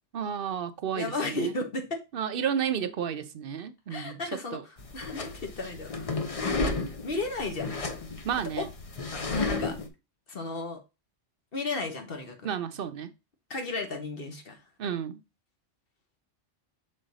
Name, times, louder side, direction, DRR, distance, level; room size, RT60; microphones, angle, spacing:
voice 1, 0.1-1.5 2.1-4.2 4.5-4.6 8.3-8.7 12.4-13.1 14.8-15.2, right 8 dB, 60° right, 0.7 m, -32 dB
voice 2, 1.0-2.0 3.9-6.2 7.0-7.7 8.6-8.7 9.1-9.8 10.3-10.8 11.5-12.5 13.5-14.6, left 3 dB, 55° left, 1.3 m, -34 dB
sound 1, 4.8-9.9, left 3 dB, 35° left, 0.7 m, -33 dB
6.4 x 3.9 x 3.9 m
omnidirectional pair, 1.2 m